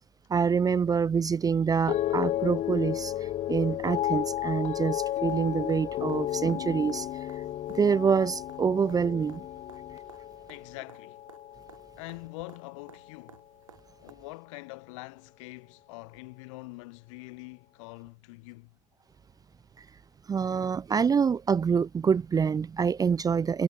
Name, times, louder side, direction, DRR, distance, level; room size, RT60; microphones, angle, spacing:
voice 1, 0.3-7.1 7.7-9.4 20.3-23.6, right 6 dB, 20° right, 0.4 m, -26 dB
sound 1, 1.9-12.2 12.5-13.1, left 13 dB, 40° left, 0.4 m, -33 dB
sound 2, 5.0-14.1 16.1-16.2, right 8 dB, 85° right, 4.9 m, -58 dB
voice 2, 10.5-11.2 12.0-13.4 14.0-18.8, left 25 dB, 70° left, 1.4 m, -44 dB
hypercardioid pair, 60°, 17 cm